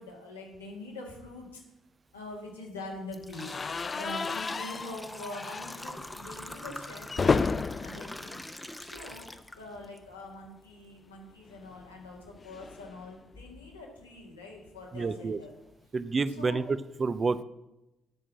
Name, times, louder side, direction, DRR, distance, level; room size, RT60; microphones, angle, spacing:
voice 1, 0.0-1.6 2.1-8.5 8.8-9.3 9.6-15.5 16.3-16.6, left 2 dB, 85° left, -2 dB, 1.8 m, -44 dB
sound 1, 2.2-2.4 2.8-10.0 10.4-10.5 11.4-11.5 12.0-12.1 12.5-12.8, left 1 dB, 10° left, 0.8 m, -43 dB
sound 2, 3.3-9.4 9.7-9.9 10.1-10.2 11.5-13.8, left 4 dB, 35° left, 0.3 m, -33 dB
voice 2, 14.9-15.4 15.9-17.4, right 4 dB, 35° right, 14 dB, 0.5 m, -29 dB
8.7 x 6.1 x 7.5 m, 0.95 s
figure-of-eight pair, 45°, 0 cm